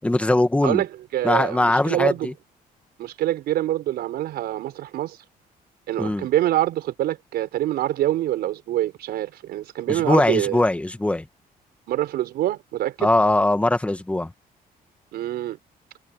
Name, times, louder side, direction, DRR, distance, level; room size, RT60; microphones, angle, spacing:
voice 1, 0.0-0.8 1.2-2.3 6.0-6.3 9.9-11.2 13.0-14.3, left 2 dB, 10° left, 1.6 m, -21 dB
voice 2, 0.6-2.3 3.0-5.2 5.9-10.6 11.9-13.1 15.1-15.6, right 13 dB, 90° right, 5.2 m, -25 dB
cardioid pair, 130°, 16 cm